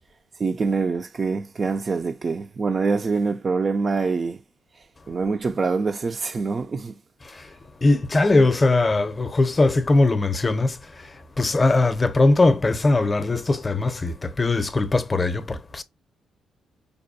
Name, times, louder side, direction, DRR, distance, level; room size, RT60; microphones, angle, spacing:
voice 1, 0.4-4.4 5.1-6.9 8.4-8.5, right 4 dB, 35° right, 0.3 m, -25 dB
voice 2, 7.8-11.1 11.4-15.8, left 2 dB, 25° left, 0.6 m, -20 dB
5.2 x 2.2 x 2.5 m
cardioid pair, 90°, 0 cm